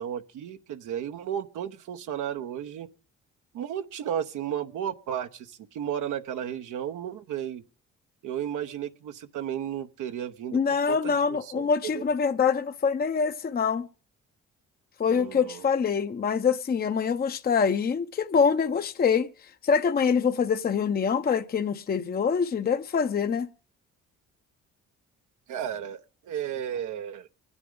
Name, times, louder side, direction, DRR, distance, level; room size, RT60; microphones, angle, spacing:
voice 1, 0.0-2.9 3.5-7.6 8.2-10.6 10.9-12.0 15.1-15.6 25.5-26.0 26.2-27.3, right 9 dB, 80° right, 0.9 m, -33 dB
voice 2, 10.5-13.9 15.0-23.5, left 6 dB, 30° left, 0.6 m, -25 dB
24.5 x 9.8 x 3.8 m
cardioid pair, 90°, 30 cm